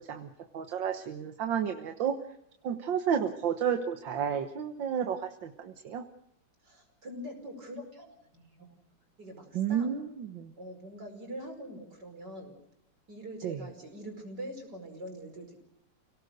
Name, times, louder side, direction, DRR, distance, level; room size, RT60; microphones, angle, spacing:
voice 1, 0.1-2.2 2.6-6.0 9.6-10.5 13.4-13.6, right 8 dB, 85° right, 6 dB, 1.9 m, -31 dB
voice 2, 6.6-8.7 9.2-10.0 10.6-12.6 13.1-15.6, equal, 65° right, 4 dB, 5.8 m, -44 dB
29.5 x 18.0 x 6.6 m, 0.79 s
omnidirectional pair, 2.0 m